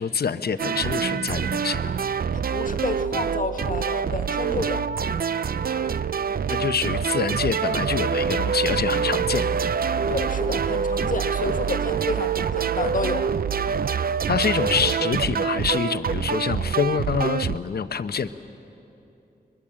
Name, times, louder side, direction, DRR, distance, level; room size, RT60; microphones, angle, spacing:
voice 1, 0.0-1.9 6.5-9.5 14.3-18.3, left 6 dB, 70° left, 11 dB, 0.8 m, -26 dB
sound 1, 0.6-17.6, right 6 dB, 65° right, 0.5 m, -25 dB
voice 2, 2.3-4.8 10.1-13.3, left 3 dB, 55° left, 6 dB, 1.6 m, -30 dB
23.5 x 21.0 x 7.5 m, 2.9 s
cardioid pair, 55°, 17 cm